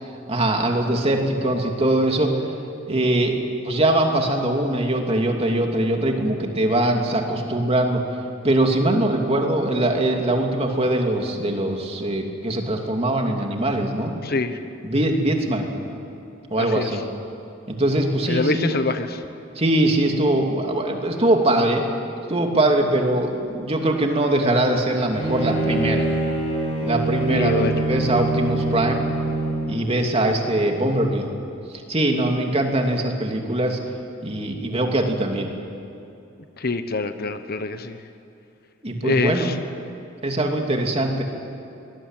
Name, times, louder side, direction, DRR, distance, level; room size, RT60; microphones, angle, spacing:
voice 1, 0.3-2.4 2.9-3.4 3.6-8.0 8.4-14.1 14.8-15.7 16.5-17.0 17.7-18.7 19.6-21.8 22.3-26.1 26.8-29.0 29.7-31.3 31.9-33.8 34.2-35.5 38.8-39.5 40.2-41.2, right 1 dB, 30° right, 2 dB, 2.8 m, -22 dB
voice 2, 14.2-14.6 16.6-17.0 18.3-19.2 27.3-27.9 36.6-38.0 39.0-39.5, left 3 dB, 50° left, 9 dB, 1.2 m, -25 dB
Bowed string instrument, 25.1-29.8, right 2 dB, 30° left, 7.6 m, -24 dB
24.5 x 20.0 x 9.1 m, 2.7 s
head